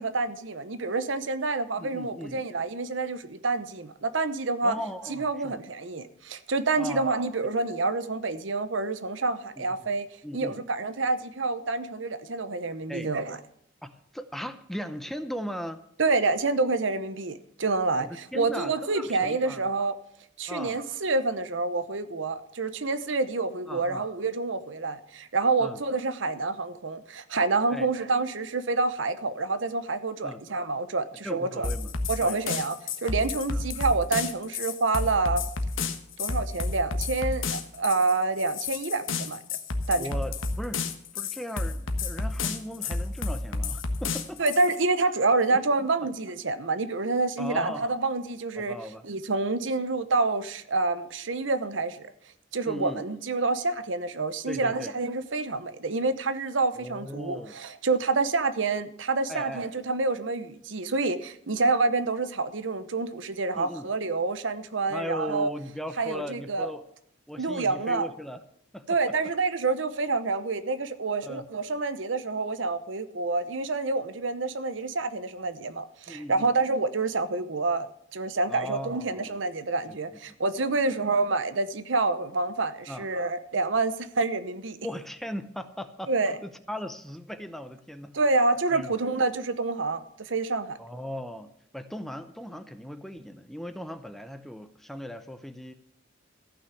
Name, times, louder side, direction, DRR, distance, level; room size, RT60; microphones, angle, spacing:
voice 1, 0.0-4.8 5.1-10.1 10.3-13.4 16.0-19.9 20.4-31.7 32.1-35.4 36.2-39.4 39.9-40.1 44.4-48.7 49.0-52.1 52.5-65.5 66.0-66.7 67.4-68.1 68.9-77.9 78.1-84.8 86.1-86.4 88.1-90.8, right 3 dB, 75° right, 12 dB, 0.9 m, -27 dB
voice 2, 1.8-2.4 4.6-5.6 6.8-7.2 9.6-9.9 10.2-10.6 12.9-13.1 13.8-15.8 18.0-19.6 20.5-20.8 23.7-24.0 25.6-25.8 27.7-27.9 30.2-30.4 31.2-31.9 32.2-32.4 33.5-33.6 40.0-40.9 41.1-44.4 45.5-45.9 47.4-47.9 48.6-49.0 52.7-53.0 54.5-54.9 56.8-57.6 59.3-59.7 63.6-63.9 64.9-66.8 67.3-68.4 68.7-69.0 71.2-71.4 76.1-76.6 78.5-79.4 79.9-80.0 80.6-81.1 82.9-83.1 84.8-88.2 88.7-88.9 90.8-95.7, equal, ahead, 10 dB, 0.6 m, -38 dB
sound 1, 31.6-44.8, left 3 dB, 85° left, 1.3 m, -31 dB
14.5 x 6.2 x 8.4 m, 0.68 s
head